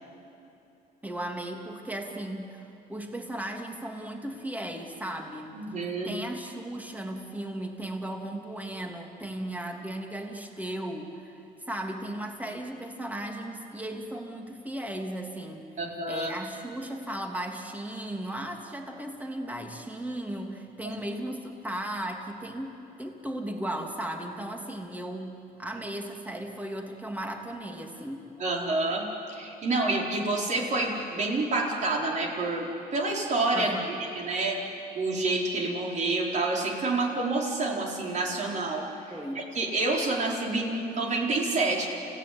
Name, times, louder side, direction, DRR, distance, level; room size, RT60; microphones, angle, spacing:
voice 1, 1.0-5.5 6.0-11.4 11.7-15.7 16.1-28.2 33.5-34.0 39.1-39.4, right 1 dB, 10° right, 2 dB, 3.0 m, -36 dB
voice 2, 5.5-6.1 15.8-16.4 20.8-20.9 28.4-33.7 34.1-34.6 34.9-38.8 39.3-41.9, right 2 dB, 45° right, -1 dB, 4.8 m, -28 dB
29.5 x 17.0 x 9.6 m, 2.8 s
cardioid pair, 110°, 17 cm